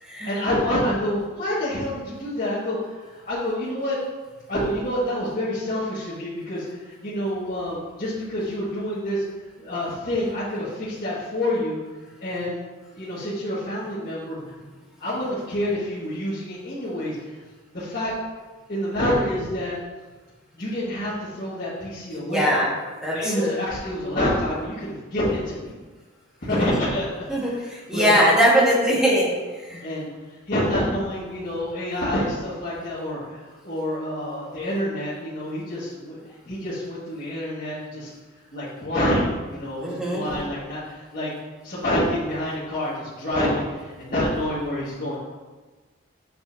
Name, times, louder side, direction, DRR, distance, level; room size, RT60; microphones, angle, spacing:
voice 1, 0.2-4.0 4.5-9.2 9.6-11.8 12.2-12.6 12.9-14.5 15.0-17.4 17.7-18.1 18.7-19.8 20.5-22.6 23.1-25.8 26.4-28.4 29.8-38.1 38.5-41.3 41.6-45.2, left 1 dB, 40° left, -12 dB, 1.8 m, -27 dB
voice 2, 22.1-22.7 23.0-23.5 26.5-26.8 27.3-29.8 39.8-40.2, equal, 5° right, -6 dB, 1.6 m, -21 dB
7.9 x 6.6 x 2.7 m, 1.3 s
head